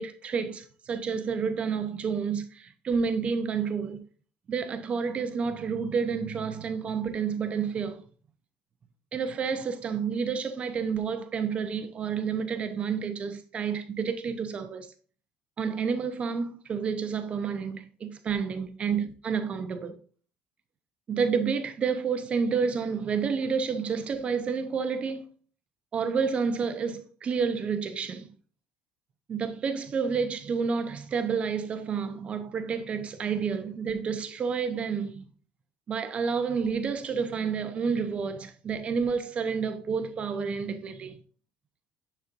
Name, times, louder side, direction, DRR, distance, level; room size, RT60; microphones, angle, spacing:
voice 1, 0.0-4.0 4.5-8.0 9.1-14.9 15.6-20.0 21.1-25.2 25.9-28.3 29.3-35.2 35.9-41.2, right 6 dB, 35° right, 0.7 m, -29 dB
10.5 x 4.3 x 2.5 m
cardioid pair, 120°, 4 cm